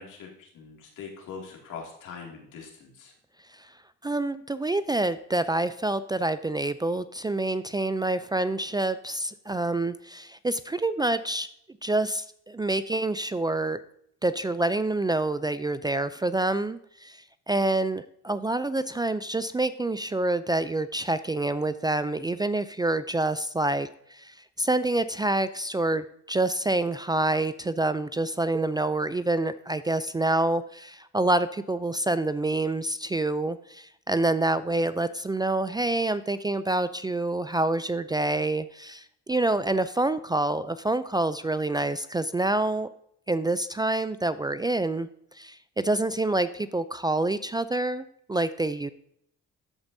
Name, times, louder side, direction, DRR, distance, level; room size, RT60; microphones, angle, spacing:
voice 1, 0.0-3.1, left 5 dB, 80° left, 0 dB, 2.4 m, -42 dB
voice 2, 4.0-11.5 11.8-13.8 14.2-42.9 43.3-45.1 45.4-45.6 45.8-48.9, right 2 dB, 15° right, 13 dB, 0.3 m, -27 dB
13.5 x 5.2 x 2.7 m, 0.70 s
cardioid pair, 90°, 30 cm